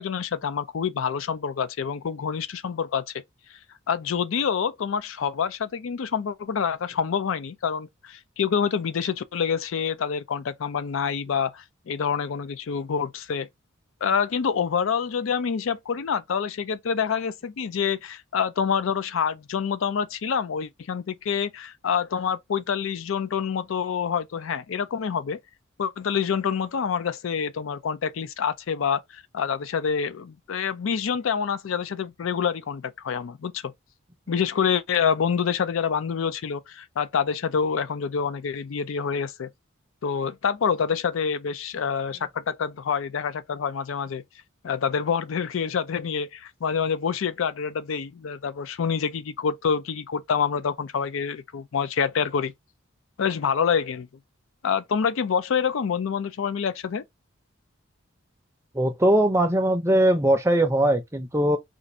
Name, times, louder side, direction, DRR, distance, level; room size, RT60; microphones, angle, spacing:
voice 1, 0.0-3.0 3.9-13.5 14.0-25.4 25.8-33.7 34.3-39.5 40.0-44.2 44.6-52.5 53.2-54.1 54.6-57.0, left 6 dB, 75° left, 0.4 m, -27 dB
voice 2, 58.7-61.6, right 1 dB, 15° right, 0.5 m, -20 dB
2.5 x 2.5 x 4.1 m
head